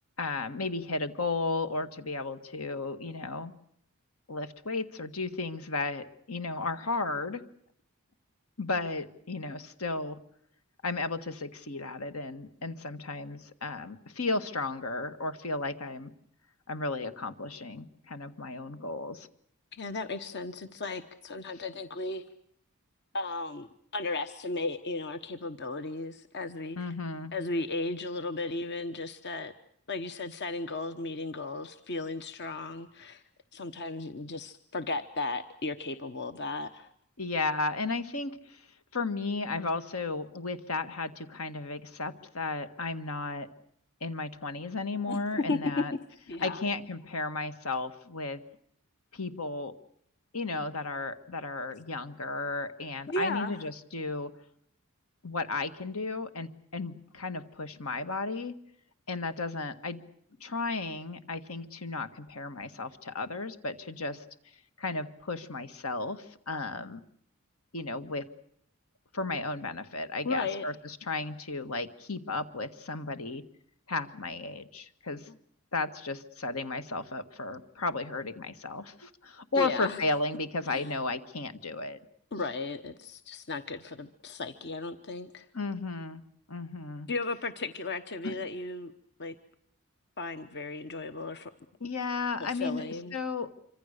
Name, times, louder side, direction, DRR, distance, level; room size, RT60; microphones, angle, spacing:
voice 1, 0.2-3.5 4.3-7.4 8.6-10.2 10.8-16.1 16.7-19.3 26.8-27.3 37.2-38.6 38.9-43.5 44.0-45.9 46.4-48.4 49.1-49.8 50.3-54.3 55.2-58.5 59.1-60.0 60.4-64.2 64.8-67.0 67.7-68.3 69.1-73.4 73.9-75.4 75.7-82.0 85.5-86.2 86.5-87.1 88.2-88.4 91.8-92.8 93.1-93.5, left 3 dB, 75° left, 10 dB, 1.7 m, -34 dB
voice 2, 19.7-22.2 23.1-23.7 23.9-26.9 27.3-29.5 29.9-33.2 33.5-36.9 45.1-45.8 46.3-46.6 53.1-53.6 70.2-70.7 79.6-80.0 80.7-80.9 82.3-85.5 87.1-88.9 89.2-89.3 90.2-91.5 92.4-93.2, left 3 dB, 50° left, 10 dB, 1.1 m, -35 dB
26.5 x 25.5 x 6.7 m, 0.67 s
head